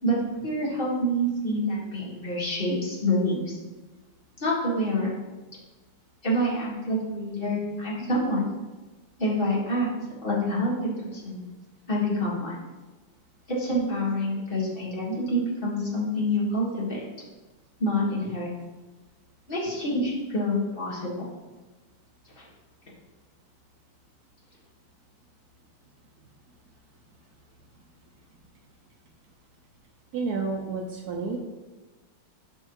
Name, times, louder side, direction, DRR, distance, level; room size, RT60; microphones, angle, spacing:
voice 1, 0.0-3.6 4.4-5.1 6.2-8.5 9.2-9.9 10.2-11.4 11.9-12.6 13.5-17.0 17.8-18.5 19.5-21.3 22.4-22.5, equal, 25° left, -6 dB, 1.7 m, -27 dB
voice 2, 30.1-31.4, right 4 dB, 70° right, 1 dB, 0.9 m, -30 dB
5.7 x 5.4 x 4.6 m, 1.2 s
omnidirectional pair, 2.4 m